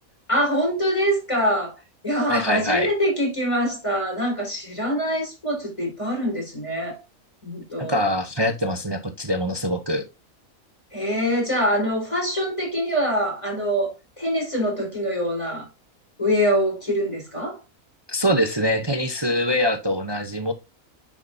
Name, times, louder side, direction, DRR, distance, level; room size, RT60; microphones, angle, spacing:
voice 1, 0.3-1.8 2.0-7.0 7.4-8.0 10.9-15.7 16.2-17.6, equal, 20° left, 4.6 m, -24 dB
voice 2, 2.3-2.9 7.8-10.0 18.1-20.5, equal, 25° right, 0.6 m, -23 dB
9.5 x 6.1 x 2.7 m
omnidirectional pair, 1.5 m